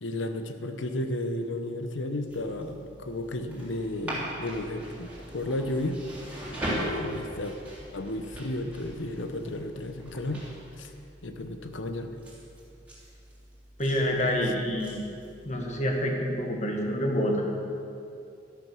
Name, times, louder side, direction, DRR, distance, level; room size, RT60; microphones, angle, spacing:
voice 1, 0.0-6.0 6.7-7.6 7.9-10.4 10.8-10.9 11.2-12.2, left 1 dB, 85° left, 8 dB, 1.0 m, -33 dB
sound 1, 2.3-16.1, equal, 10° right, 3.1 m, -41 dB
voice 2, 13.8-15.1 15.5-17.4, equal, 40° left, 1 dB, 1.7 m, -27 dB
12.5 x 11.5 x 6.3 m, 2.7 s
head